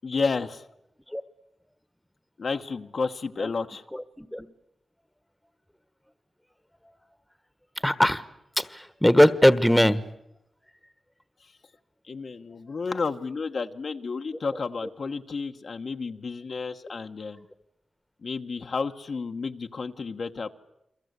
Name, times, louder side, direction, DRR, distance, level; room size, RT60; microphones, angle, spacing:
voice 1, 0.0-0.6 2.4-3.8 12.1-17.5 18.2-20.5, left 4 dB, 60° left, 5 dB, 1.2 m, -31 dB
voice 2, 3.9-4.5 7.8-8.2 8.6-10.0, equal, 5° left, 14 dB, 1.3 m, -20 dB
29.5 x 22.5 x 8.2 m, 0.84 s
wide cardioid pair, 80°, 0 cm